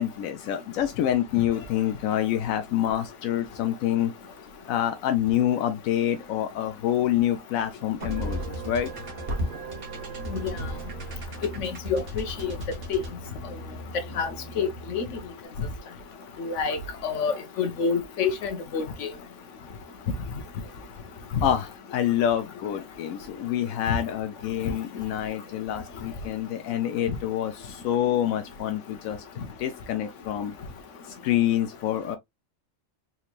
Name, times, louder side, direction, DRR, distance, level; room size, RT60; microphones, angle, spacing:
voice 1, 0.0-4.1 4.7-8.9 21.4-29.2 29.6-30.5 31.2-32.2, left 11 dB, 90° left, 1.0 m, -27 dB
sound 1, 8.0-15.3, right 1 dB, 50° right, 1.3 m, -36 dB
voice 2, 11.6-12.5 12.9-13.0 14.2-14.3 14.6-15.0 16.4-16.8 17.0-19.1 21.3-21.4 23.9-24.0, left 6 dB, 70° left, 1.1 m, -27 dB
4.4 x 3.0 x 2.3 m
omnidirectional pair, 1.4 m